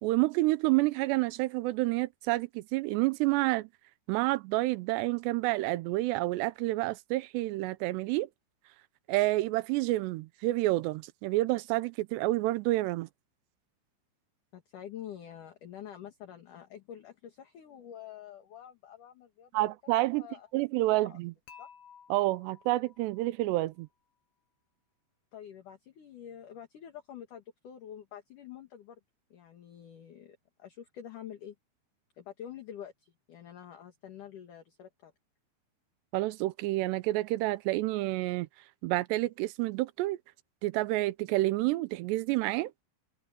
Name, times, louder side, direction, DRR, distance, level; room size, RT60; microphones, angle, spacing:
voice 1, 0.0-3.7 4.1-8.3 9.1-13.1 19.5-20.2 20.5-21.3 22.1-23.9 36.1-38.5 38.8-40.2 40.6-42.7, right 19 dB, 85° right, 2.5 m, -29 dB
voice 2, 14.5-20.5 20.9-21.2 21.6-21.7 25.3-29.0 29.3-31.5 32.2-35.1, left 9 dB, 55° left, 2.7 m, -47 dB
Dishes pots and pans / Chink clink, 21.5-23.6, left 7 dB, 70° left, 3.8 m, -55 dB
omnidirectional pair, 5.6 m